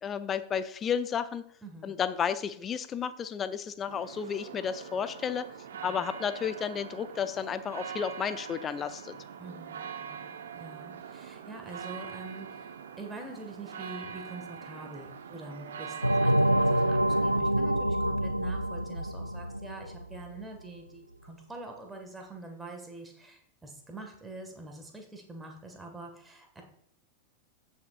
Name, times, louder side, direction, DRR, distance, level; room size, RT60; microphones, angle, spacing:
voice 1, 0.0-1.4 1.8-5.5 5.8-9.2, left 7 dB, 25° left, 12 dB, 0.6 m, -32 dB
voice 2, 1.6-2.0 5.8-6.0 9.4-12.7 13.0-26.6, right 2 dB, 10° right, 3 dB, 1.8 m, -45 dB
sound 1, 3.9-17.4, right 7 dB, 65° right, 0.8 m, -43 dB
sound 2, 16.0-20.4, right 1 dB, 90° right, 0.3 m, -26 dB
16.5 x 6.5 x 2.5 m, 0.70 s
figure-of-eight pair, 90°, 0 cm